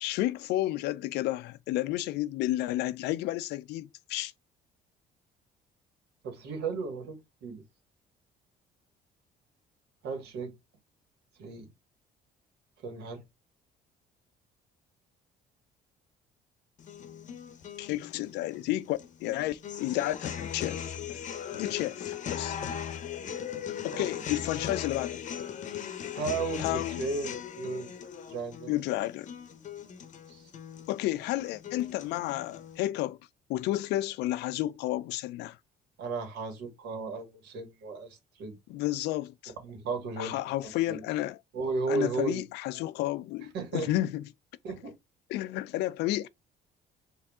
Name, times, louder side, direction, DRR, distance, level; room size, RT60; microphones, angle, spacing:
voice 1, 0.0-4.3 17.8-21.2 21.6-22.6 23.8-25.2 26.6-27.0 28.7-29.3 30.9-33.2 33.5-35.6 38.7-39.5 40.2-41.4 41.9-44.2 45.3-46.3, left 15 dB, 85° left, 0.4 m, -31 dB
voice 2, 6.2-7.6 10.0-10.5 11.4-11.7 12.8-13.2 21.5-21.7 23.9-24.0 26.1-27.9 28.3-28.8 30.3-30.5 36.0-38.6 39.6-40.4 40.9-41.0 41.5-42.4 43.5-43.9 44.6-45.0, right 4 dB, 80° right, 1.8 m, -34 dB
sound 1, 16.8-32.8, left 8 dB, 45° left, 0.7 m, -39 dB
4.7 x 2.6 x 3.6 m
cardioid pair, 110°, 17 cm